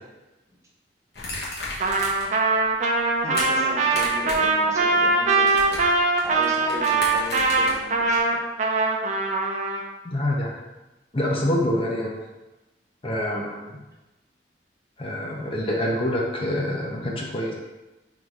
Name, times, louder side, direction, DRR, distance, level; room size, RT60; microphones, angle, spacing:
sound 1, 1.1-2.4 2.7-3.4 3.8-4.5 4.8-8.2, left 2 dB, 65° left, 1.2 m, -34 dB
Trumpet, 1.8-9.8, right 3 dB, 45° right, 0.5 m, -22 dB
voice 1, 3.2-5.8 6.2-8.4, equal, 20° right, -4 dB, 0.8 m, -36 dB
voice 2, 10.0-10.5 11.1-12.1 13.0-13.8 15.0-17.5, left 1 dB, 30° left, -2 dB, 0.6 m, -26 dB
3.8 x 2.6 x 4.6 m, 1.1 s
head